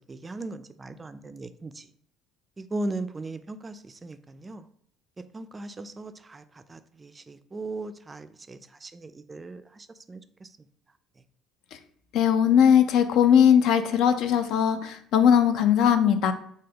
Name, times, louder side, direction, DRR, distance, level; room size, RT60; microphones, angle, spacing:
voice 1, 0.1-1.8 2.6-4.7 5.3-6.4 6.7-10.2, right 2 dB, 25° right, 11 dB, 0.3 m, -38 dB
voice 2, 12.1-16.3, left 8 dB, 70° left, 9 dB, 0.4 m, -19 dB
3.3 x 2.2 x 3.4 m, 0.65 s
supercardioid pair, 70°, 0 cm